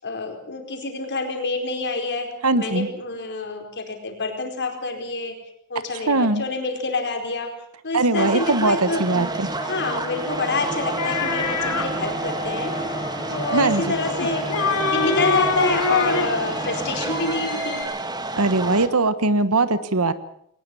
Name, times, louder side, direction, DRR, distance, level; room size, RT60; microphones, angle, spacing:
voice 1, 0.0-2.3 2.5-5.4 5.7-7.5 7.8-9.1 9.6-12.7 13.3-14.5 14.8-17.8, left 3 dB, 55° left, 4 dB, 4.7 m, -27 dB
voice 2, 2.4-2.9 6.1-6.4 7.9-9.5 13.5-13.8 18.4-20.1, right 2 dB, 70° right, 13 dB, 1.4 m, -20 dB
sound 1, 8.2-18.9, right 2 dB, 20° right, 1.7 m, -30 dB
sound 2, 9.0-17.8, equal, 20° left, 6.0 m, -33 dB
sound 3, 11.0-11.9 14.2-16.3, left 4 dB, 85° left, 2.9 m, -24 dB
21.5 x 19.5 x 7.1 m, 0.71 s
head